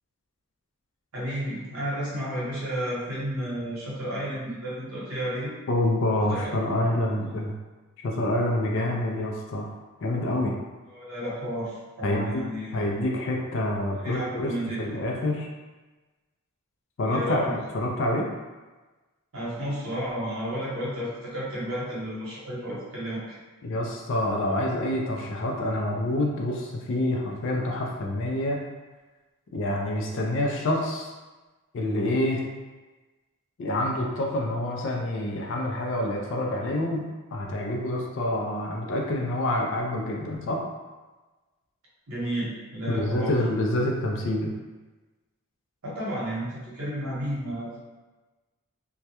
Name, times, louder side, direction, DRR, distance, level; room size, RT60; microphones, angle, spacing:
voice 1, 1.1-5.5 6.3-6.5 10.9-12.7 14.0-14.8 17.1-17.6 19.3-23.2 42.1-43.3 45.8-47.8, equal, 75° right, -7 dB, 0.9 m, -32 dB
voice 2, 5.7-7.6 8.0-9.7 10.0-10.5 12.0-12.4 12.7-14.5 14.8-15.5 17.0-18.3 23.6-28.6 29.5-31.1 31.7-32.4 33.6-40.6 42.9-44.5, left 1 dB, 55° left, -1 dB, 0.3 m, -27 dB
2.2 x 2.1 x 2.8 m, 1.2 s
head